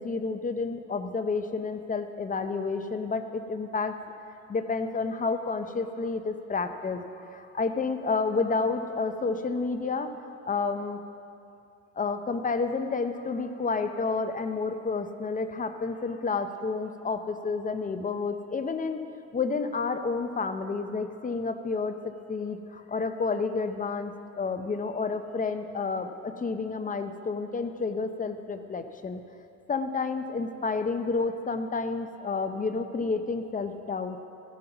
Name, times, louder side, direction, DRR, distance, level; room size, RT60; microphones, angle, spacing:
voice 1, 0.0-3.9 4.5-10.1 10.5-11.0 12.0-19.0 19.3-29.2 29.7-34.2, left 4 dB, 25° left, 8 dB, 0.6 m, -30 dB
14.0 x 5.4 x 5.8 m, 2.7 s
cardioid pair, 90°, 30 cm